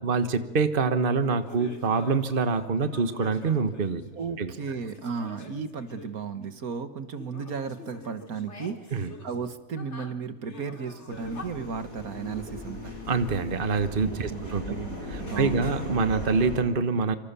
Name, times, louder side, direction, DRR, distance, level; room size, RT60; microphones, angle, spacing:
voice 1, 0.0-4.0 4.4-4.5 8.9-9.1 13.1-14.6 15.1-17.2, right 4 dB, 40° right, 10 dB, 1.5 m, -25 dB
sound 1, 1.4-6.7 7.1-11.4, left 3 dB, 50° left, 2.8 m, -46 dB
voice 2, 4.1-8.9 9.2-12.9 14.3-15.7, right 5 dB, 80° right, 11 dB, 2.0 m, -35 dB
sound 2, 11.1-16.6, left 1 dB, 70° left, 7.7 m, -38 dB
27.0 x 26.0 x 7.0 m, 0.97 s
omnidirectional pair, 1.5 m